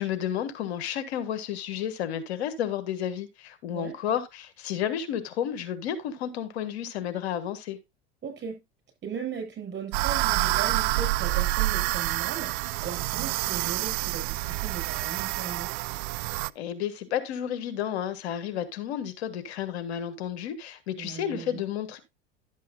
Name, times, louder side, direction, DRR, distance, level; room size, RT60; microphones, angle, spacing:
voice 1, 0.0-7.8 16.5-22.0, left 9 dB, 75° left, 1.5 m, -31 dB
voice 2, 8.2-8.6 9.0-15.7 21.0-21.6, right 7 dB, 35° right, 6.9 m, -37 dB
sound 1, 9.9-16.5, right 20 dB, 60° right, 0.4 m, -28 dB
11.5 x 8.3 x 2.6 m
hypercardioid pair, 90°, 32 cm